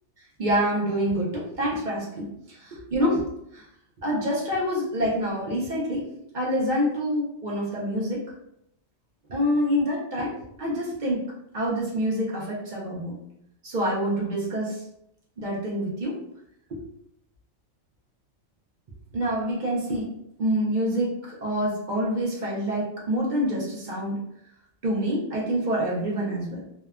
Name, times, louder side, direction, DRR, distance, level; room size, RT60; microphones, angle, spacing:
voice 1, 0.4-3.6 4.0-6.0 6.3-8.2 9.3-10.3 10.6-11.2 11.5-13.2 13.6-14.8 15.4-16.2 19.1-24.2 24.8-26.6, equal, 55° right, -4 dB, 0.5 m, -26 dB
2.7 x 2.1 x 2.3 m, 0.79 s
omnidirectional pair, 1.4 m